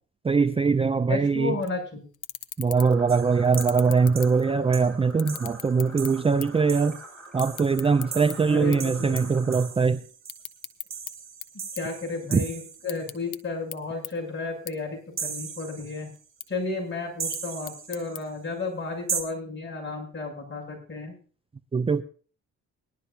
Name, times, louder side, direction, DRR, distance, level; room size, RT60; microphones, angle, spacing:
voice 1, 0.2-1.6 2.6-7.0 7.3-10.0 12.3-12.4 21.7-22.0, right 5 dB, 20° right, 11 dB, 0.5 m, -22 dB
voice 2, 1.1-2.0 8.5-9.2 11.8-16.1 16.5-21.1, left 3 dB, 40° left, -1 dB, 7.2 m, -33 dB
sound 1, 1.6-1.8 2.1-3.0 3.4-4.7 5.1-6.7 6.9-8.3 8.7-8.9 9.2-9.4 9.7-11.1 11.4-12.4 12.7-13.4 13.7-13.8 14.0-14.1 14.7-14.8 15.1-15.7 16.1-16.5 17.1-18.2, left 12 dB, 85° left, 1.0 m, -38 dB
sound 2, 2.7-9.7, right 1 dB, 5° left, 7.1 m, -46 dB
sound 3, 3.1-3.8 4.1-4.3 4.7-4.9 5.3-13.1 15.2-16.2 17.2-18.2 19.1-19.2, right 6 dB, 45° right, 2.8 m, -38 dB
20.5 x 12.0 x 2.8 m, 0.41 s
cardioid pair, 90°, 30 cm